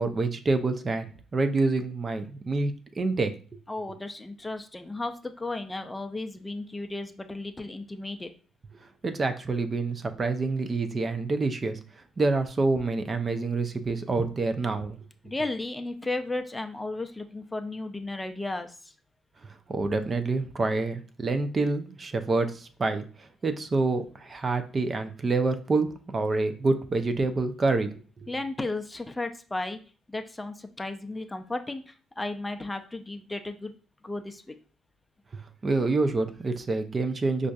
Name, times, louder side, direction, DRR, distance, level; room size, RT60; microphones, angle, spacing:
voice 1, 0.0-3.3 9.0-11.8 12.2-15.0 19.4-27.9 28.2-28.3 35.3-37.5, right 3 dB, 35° right, 8 dB, 0.5 m, -27 dB
voice 2, 3.7-8.3 15.2-18.9 28.3-29.8 30.1-33.7 34.0-34.5, left 2 dB, 15° left, 7 dB, 0.4 m, -34 dB
5.1 x 2.5 x 2.4 m, 0.39 s
hypercardioid pair, 50°, 0 cm